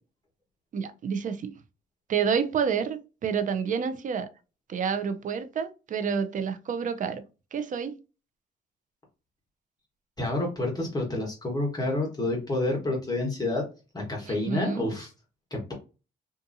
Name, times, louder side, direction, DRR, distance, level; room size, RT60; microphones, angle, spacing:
voice 1, 0.7-1.5 2.1-4.3 4.7-7.2 7.5-8.0 14.2-14.9, right 6 dB, 40° right, 0.5 m, -29 dB
voice 2, 10.2-13.6 13.9-15.1 15.5-15.7, left 2 dB, 20° left, 1.0 m, -29 dB
2.6 x 2.5 x 2.5 m
cardioid pair, 90°, 20 cm